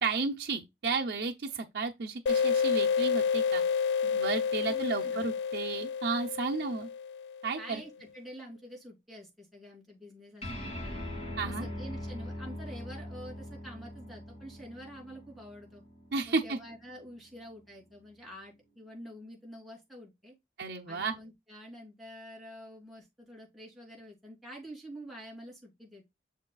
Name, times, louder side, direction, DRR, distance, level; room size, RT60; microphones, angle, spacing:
voice 1, 0.0-3.6 4.0-6.9 7.4-7.8 11.4-11.7 16.1-16.6 20.6-21.1, right 4 dB, 65° right, 0.7 m, -33 dB
sound 1, 2.3-7.6, left 6 dB, 65° left, 0.3 m, -29 dB
voice 2, 4.7-5.2 7.6-11.0 11.4-15.8 16.2-20.3 20.9-26.0, equal, ahead, 3.2 m, -47 dB
sound 2, 10.4-17.2, left 1 dB, 35° left, 2.1 m, -42 dB
6.7 x 6.4 x 2.3 m
head